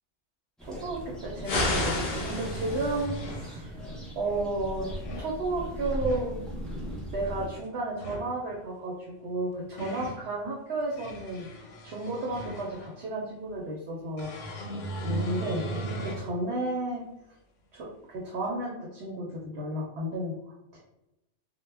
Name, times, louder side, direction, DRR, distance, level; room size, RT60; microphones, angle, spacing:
sound 1, 0.6-7.5, equal, ahead, 0.4 m, -39 dB
voice 1, 0.6-3.7 4.2-4.9 5.2-6.4 7.1-14.3 15.0-15.6 16.0-17.0 17.7-20.4 20.7-20.8, right 2 dB, 65° right, -2 dB, 0.8 m, -33 dB
sound 2, 1.4-3.1, left 2 dB, 50° left, 0.6 m, -30 dB
sound 3, 2.1-3.6 4.6-5.3 5.8-6.3 7.9-8.3 9.3-10.2 10.8-13.0 14.2-16.3 16.8-16.9 18.4-18.5, right 2 dB, 85° left, 0.9 m, -37 dB
2.2 x 2.1 x 3.2 m, 0.90 s
omnidirectional pair, 1.2 m